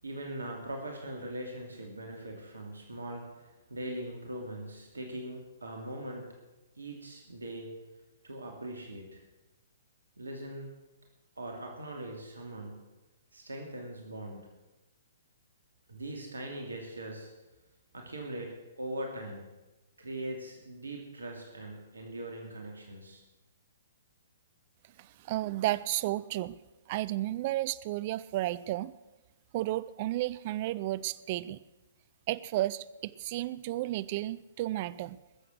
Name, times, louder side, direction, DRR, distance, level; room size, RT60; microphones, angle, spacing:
voice 1, 0.0-6.3 6.8-7.7 8.2-9.2 10.2-10.7 11.4-12.8 13.3-14.5 15.9-17.3 17.9-19.4 20.0-23.2, right 1 dB, 80° right, 2 dB, 2.7 m, -41 dB
voice 2, 25.0-26.6 26.9-28.9 29.5-31.6 32.3-35.2, right 16 dB, 40° right, 18 dB, 0.5 m, -32 dB
20.0 x 7.9 x 6.5 m, 1.1 s
figure-of-eight pair, 125°, 0 cm